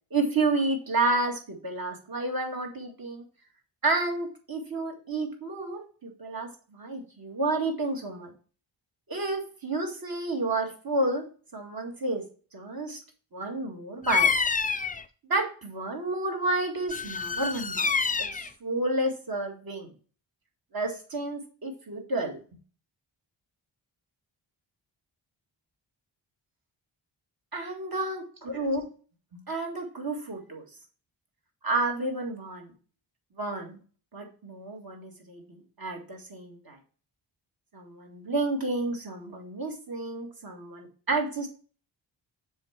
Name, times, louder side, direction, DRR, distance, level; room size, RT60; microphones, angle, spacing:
voice 1, 0.1-3.2 3.8-8.3 9.1-11.2 11.5-12.2 12.5-13.0 13.3-14.3 15.2-19.9 20.7-22.4 27.5-28.8 29.3-30.6 31.6-32.7 33.4-33.8 34.1-36.8 37.7-41.5, right 2 dB, 45° right, 2 dB, 2.0 m, -30 dB
Bird vocalization bird call bird song, 14.0-15.0 16.9-18.5, left 5 dB, 20° left, 0.4 m, -27 dB
7.1 x 3.8 x 5.8 m, 0.39 s
wide cardioid pair, 100°, 48 cm